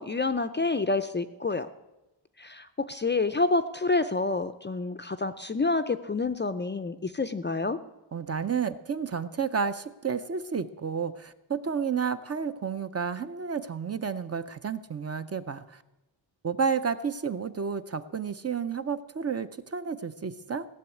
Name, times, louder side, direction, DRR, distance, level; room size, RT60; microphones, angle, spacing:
voice 1, 0.0-1.7 2.4-7.8, left 3 dB, 25° left, 10 dB, 0.4 m, -28 dB
voice 2, 8.1-15.8 16.4-20.7, right 6 dB, 35° right, 11 dB, 0.5 m, -31 dB
16.5 x 7.0 x 9.2 m, 0.99 s
wide cardioid pair, 145°, 47 cm